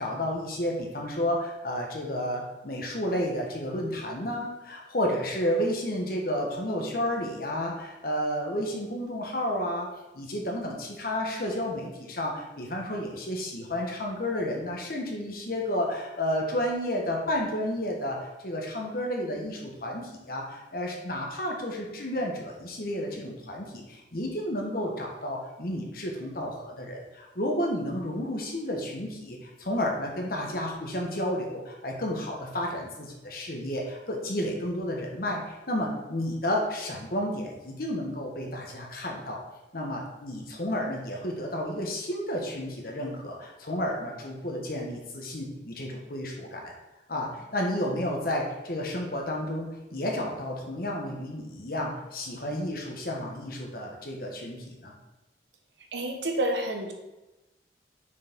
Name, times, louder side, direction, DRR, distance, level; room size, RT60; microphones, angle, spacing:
voice 1, 0.0-9.9 10.1-39.4 39.7-46.7 47.1-54.9, left 1 dB, 55° left, 0 dB, 1.3 m, -31 dB
voice 2, 55.9-56.9, right 1 dB, 80° right, 4 dB, 1.0 m, -29 dB
6.2 x 4.7 x 3.8 m, 1.0 s
head